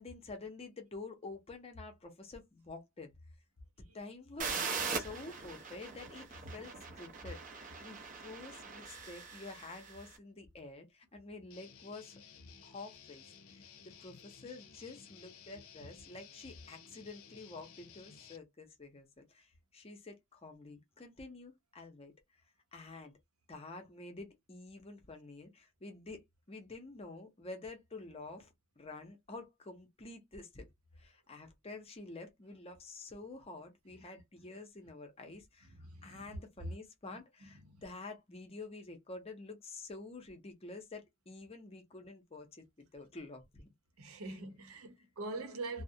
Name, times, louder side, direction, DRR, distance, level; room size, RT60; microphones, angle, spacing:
voice 1, 0.0-3.1 3.9-12.2 12.6-13.2 13.5-22.1 22.7-23.1 23.5-26.2 26.5-30.7 31.0-35.7 36.0-43.7 44.2-44.4, left 3 dB, 25° left, 0.6 m, -49 dB
sound 1, 4.4-10.1, right 5 dB, 35° right, 0.5 m, -41 dB
Guitar, 11.5-18.4, left 7 dB, 75° left, 0.6 m, -56 dB
voice 2, 35.8-36.4 37.0-37.2 37.7-37.8 44.0-45.8, right 3 dB, 80° right, 0.8 m, -44 dB
2.3 x 2.0 x 2.7 m
head